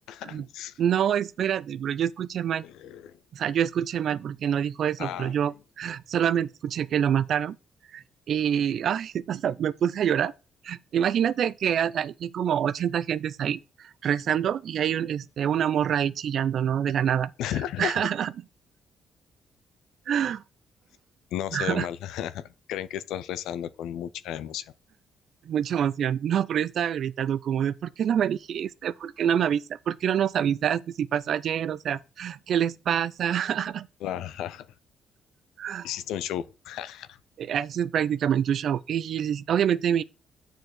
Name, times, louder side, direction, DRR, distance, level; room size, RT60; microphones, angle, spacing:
voice 1, 0.1-0.8 2.6-3.1 5.0-5.4 17.4-18.1 21.3-24.7 34.0-34.7 35.8-37.2, left 11 dB, 90° left, 0.5 m, -34 dB
voice 2, 0.8-2.7 3.3-7.6 7.9-10.3 10.6-17.3 17.8-18.3 20.1-20.4 21.5-21.9 25.5-33.9 35.6-35.9 37.4-40.0, right 9 dB, 65° right, 0.4 m, -26 dB
7.6 x 4.6 x 6.4 m
cardioid pair, 90°, 0 cm